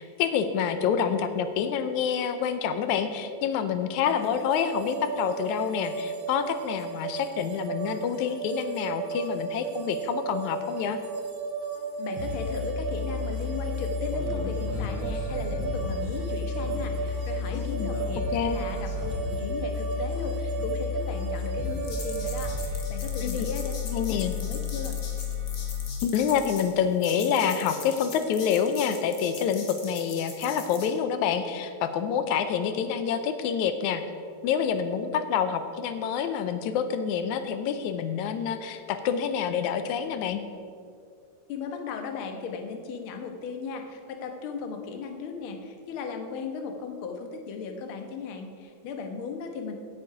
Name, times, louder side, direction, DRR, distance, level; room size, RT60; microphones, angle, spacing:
voice 1, 0.0-11.0 17.5-17.9 18.3-18.7 23.2-23.5 23.9-24.3 26.0-34.0 34.4-40.4, left 7 dB, 90° left, 9 dB, 2.1 m, -27 dB
sound 1, 4.0-22.6, right 5 dB, 60° right, 1.0 m, -35 dB
voice 2, 12.0-23.7 24.0-25.0 41.5-49.8, left 5 dB, 60° left, 4 dB, 1.6 m, -36 dB
sound 2, 12.1-25.9, left 5 dB, 15° right, 2.2 m, -32 dB
sound 3, 14.1-16.2 16.6-19.5 20.5-21.0 21.6-30.9, left 3 dB, 45° left, 1.5 m, -41 dB
16.5 x 7.4 x 4.8 m, 2.3 s
omnidirectional pair, 3.3 m